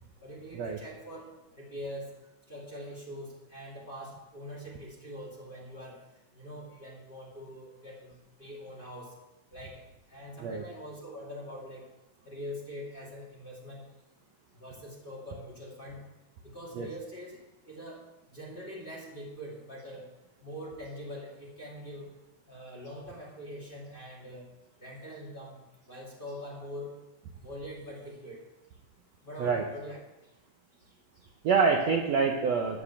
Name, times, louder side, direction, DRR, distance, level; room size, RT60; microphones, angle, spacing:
voice 1, 0.2-1.2 1.5-2.1 2.5-6.0 6.3-9.1 9.5-9.8 10.1-11.8 12.2-13.9 14.5-16.0 16.4-17.4 17.7-18.0 18.3-20.1 20.4-22.1 22.5-24.5 24.8-25.6 25.9-26.9 27.4-28.4 29.2-30.3 30.9-31.3, equal, 15° left, -5 dB, 2.2 m, -43 dB
voice 2, 31.4-32.8, right 5 dB, 65° right, 1 dB, 1.7 m, -26 dB
13.0 x 4.9 x 8.6 m, 1.0 s
omnidirectional pair, 3.9 m